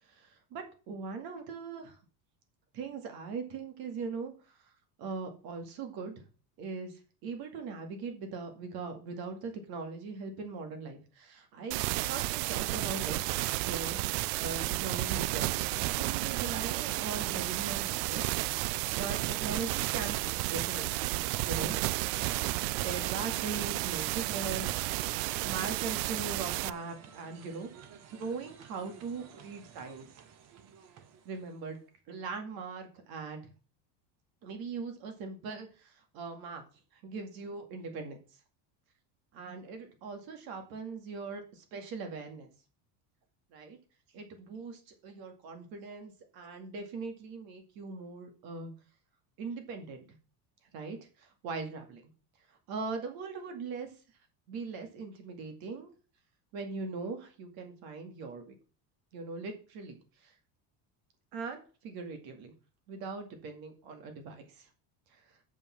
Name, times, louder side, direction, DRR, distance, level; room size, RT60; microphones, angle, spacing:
voice 1, 0.0-2.0 2.7-4.7 5.0-6.3 6.6-11.8 12.1-13.3 13.7-15.6 16.0-18.4 18.9-21.1 21.4-21.8 22.7-24.7 25.4-27.9 28.2-30.3 31.2-31.8 32.1-33.5 34.4-36.6 36.9-38.2 39.3-42.5 43.5-43.8 44.1-48.7 49.4-50.2 50.7-52.0 52.5-53.9 54.5-55.9 56.5-58.5 59.1-60.3 61.3-62.5 62.9-64.7 65.1-65.4, right 4 dB, 50° right, 5 dB, 2.2 m, -40 dB
sound 1, 11.7-26.7, right 19 dB, 85° right, 0.6 m, -32 dB
sound 2, 14.0-31.9, right 8 dB, 35° right, 1.0 m, -54 dB
7.2 x 5.5 x 7.1 m, 0.36 s
cardioid pair, 180°, 47 cm